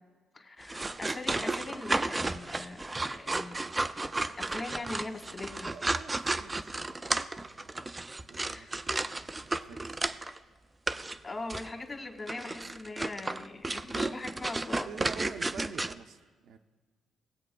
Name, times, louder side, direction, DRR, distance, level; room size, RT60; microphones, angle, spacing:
voice 1, 0.3-3.6 4.4-5.7 8.4-8.7 11.2-14.9, left 2 dB, 30° left, 4 dB, 1.5 m, -41 dB
sound 1, 0.6-10.4 10.9-11.2 11.5-11.7 12.3-15.9, right 2 dB, 20° right, 0.3 m, -33 dB
voice 2, 5.7-10.2 14.8-16.6, right 6 dB, 75° right, 6 dB, 0.5 m, -48 dB
20.0 x 7.9 x 2.3 m, 1.5 s
cardioid pair, 90°, 0 cm